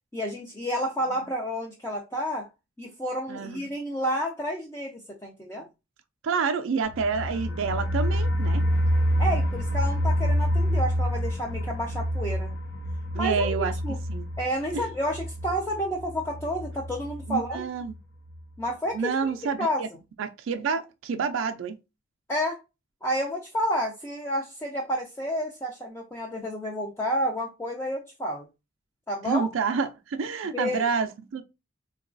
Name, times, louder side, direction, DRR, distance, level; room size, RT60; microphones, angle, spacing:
voice 1, 0.1-2.5 2.8-5.7 9.2-12.5 13.1-13.6 13.8-14.0 14.4-17.7 18.6-19.8 22.3-22.6 23.0-28.5 29.1-29.5 30.5-30.9, equal, 15° left, 0.5 m, -30 dB
voice 2, 3.3-3.7 6.2-8.7 13.1-13.7 14.1-14.3 14.7-14.9 17.3-17.9 18.9-19.9 20.2-21.8 29.2-31.4, right 5 dB, 65° right, 0.4 m, -28 dB
sound 1, 6.8-17.5 17.9-18.0 18.3-18.4, equal, 75° left, 0.6 m, -27 dB
3.9 x 2.2 x 2.5 m
head